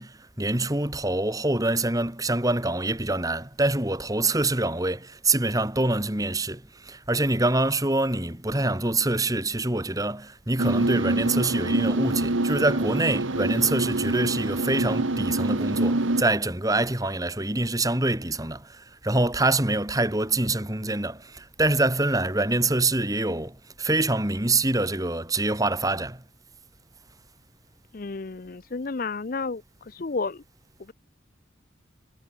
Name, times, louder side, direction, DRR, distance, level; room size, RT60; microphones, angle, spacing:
voice 1, 0.0-26.2, right 2 dB, 20° right, 2.3 m, -25 dB
sound 1, 10.6-16.2, right 2 dB, 85° right, 1.5 m, -25 dB
voice 2, 27.9-30.4 30.9-31.0, left 4 dB, 45° left, 0.6 m, -32 dB
head